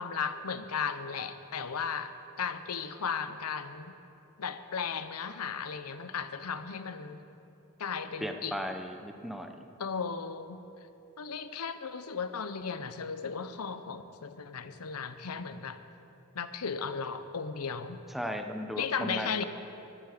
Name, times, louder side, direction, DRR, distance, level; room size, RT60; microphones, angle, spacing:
voice 1, 0.0-2.1 2.4-3.9 4.4-7.2 7.8-8.6 9.8-10.6 11.2-15.8 16.3-18.0 18.8-19.4, left 6 dB, 80° left, 11 dB, 0.7 m, -35 dB
voice 2, 8.2-9.7 18.1-19.4, equal, ahead, 5 dB, 0.7 m, -36 dB
14.0 x 12.0 x 5.0 m, 2.7 s
head